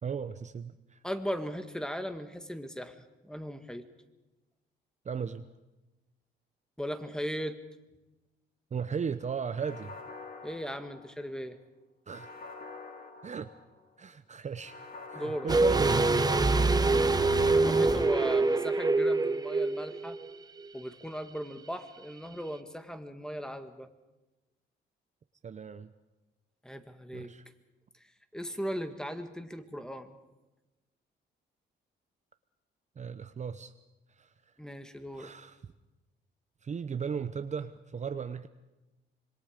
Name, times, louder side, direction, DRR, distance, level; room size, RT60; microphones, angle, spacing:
voice 1, 0.0-1.0 5.0-5.5 8.7-9.9 12.1-12.3 13.2-13.5 14.0-14.8 15.1-16.4 25.4-25.9 27.1-27.4 33.0-33.7 34.2-34.3 35.1-35.6 36.6-38.5, right 6 dB, 35° right, 10 dB, 0.8 m, -36 dB
voice 2, 1.0-3.0 3.2-3.9 6.8-7.6 10.4-11.6 15.1-15.5 17.5-20.2 20.7-23.9 26.6-27.3 28.3-30.2 34.6-35.3, equal, 5° left, 8 dB, 1.8 m, -37 dB
sound 1, 9.6-11.4 12.1-13.9 14.6-16.5 17.1-19.0, left 3 dB, 45° left, 2.6 m, -47 dB
sound 2, 15.5-20.3 20.6-20.7, right 3 dB, 20° right, 1.1 m, -25 dB
26.5 x 22.0 x 5.1 m, 1.0 s
cardioid pair, 90°, 20 cm